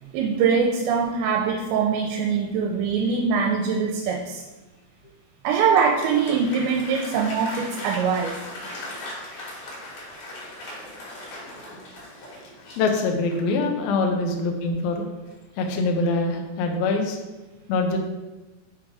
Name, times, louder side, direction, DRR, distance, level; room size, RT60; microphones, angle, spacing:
voice 1, 0.0-4.4 5.4-8.4, right 6 dB, 85° right, 1 dB, 2.8 m, -23 dB
Applause, 5.5-13.6, left 1 dB, 60° left, 3.0 m, -38 dB
voice 2, 12.8-15.0 15.6-17.2 17.7-18.0, left 3 dB, 80° left, 3 dB, 2.2 m, -24 dB
6.7 x 3.5 x 4.7 m, 1.1 s
omnidirectional pair, 5.2 m